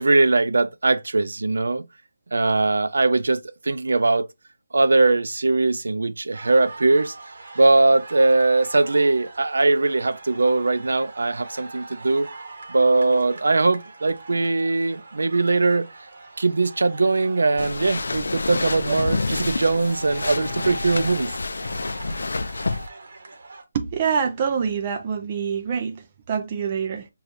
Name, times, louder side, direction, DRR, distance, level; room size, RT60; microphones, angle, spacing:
voice 1, 0.0-1.9 2.3-4.3 4.7-7.1 7.6-12.3 12.7-15.9 16.4-21.3, right 3 dB, 85° right, 0.4 m, -20 dB
sound 1, 6.3-23.6, right 3 dB, 45° right, 0.9 m, -42 dB
sound 2, 17.6-22.9, left 3 dB, 75° left, 0.3 m, -28 dB
voice 2, 23.7-27.1, right 6 dB, 20° right, 0.3 m, -26 dB
6.4 x 2.3 x 2.5 m
hypercardioid pair, 180°, 0 cm